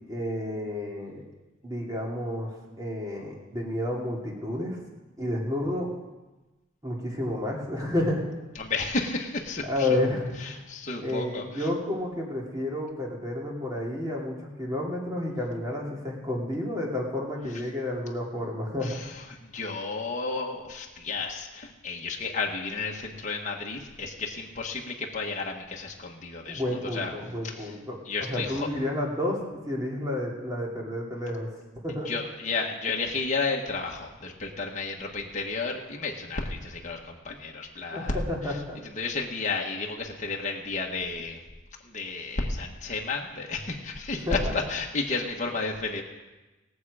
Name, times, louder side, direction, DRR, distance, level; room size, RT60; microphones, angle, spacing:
voice 1, 0.1-1.2 1.6-4.8 5.2-5.9 6.8-8.2 9.7-10.6 11.0-19.0 26.5-28.0 28.3-31.5 31.8-32.1 37.9-38.8 44.2-44.5, left 1 dB, 15° right, -2 dB, 2.5 m, -30 dB
voice 2, 8.5-9.9 10.4-11.7 18.8-27.1 27.4-27.7 28.0-28.7 32.0-41.4 41.8-46.0, left 3 dB, 35° left, -1 dB, 1.4 m, -32 dB
20.5 x 7.5 x 4.9 m, 1.1 s
head